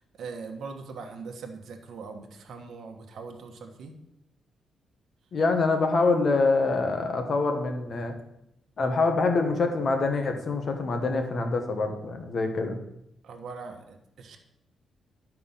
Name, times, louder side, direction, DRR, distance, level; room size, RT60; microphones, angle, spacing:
voice 1, 0.2-4.0 13.2-14.4, right 4 dB, 55° right, 3 dB, 1.3 m, -41 dB
voice 2, 5.3-8.1 8.8-12.8, left 3 dB, 35° left, 5 dB, 1.2 m, -25 dB
12.0 x 4.6 x 5.6 m, 0.84 s
wide cardioid pair, 180°, 0 cm